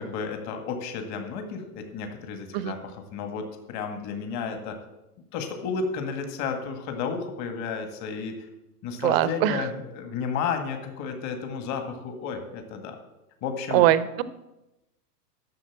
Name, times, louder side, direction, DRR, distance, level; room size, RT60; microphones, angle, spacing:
voice 1, 0.0-4.8 5.3-8.4 8.8-13.0 13.4-13.8, left 5 dB, 35° left, 6 dB, 1.9 m, -32 dB
voice 2, 9.0-9.6 13.7-14.2, right 13 dB, 40° right, 16 dB, 0.8 m, -21 dB
12.0 x 6.8 x 7.2 m, 0.96 s
hypercardioid pair, 125°, 48 cm